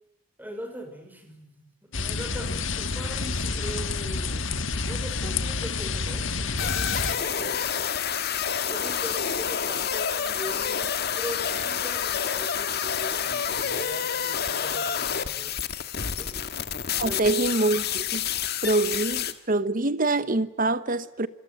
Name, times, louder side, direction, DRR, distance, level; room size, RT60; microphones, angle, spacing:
voice 1, 0.4-4.6 4.9-7.8 8.6-15.6 16.2-16.5 17.0-17.3, equal, 10° right, 5.5 m, -41 dB
sound 1, 1.9-7.1, left 4 dB, 65° left, 1.7 m, -29 dB
sound 2, 6.6-19.3, left 8 dB, 50° left, 1.7 m, -28 dB
voice 2, 17.0-18.2 18.6-21.3, right 2 dB, 40° right, 1.0 m, -25 dB
26.0 x 24.5 x 9.3 m
head